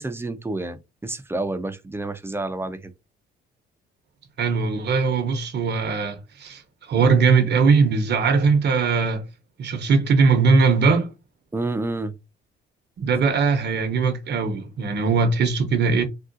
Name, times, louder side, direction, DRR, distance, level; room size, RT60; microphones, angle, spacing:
voice 1, 0.0-2.9 11.5-12.1, right 2 dB, 10° right, 0.5 m, -29 dB
voice 2, 4.4-9.2 9.6-11.1 13.0-16.0, right 4 dB, 60° right, 0.8 m, -20 dB
3.6 x 2.3 x 2.5 m
cardioid pair, 90°, 20 cm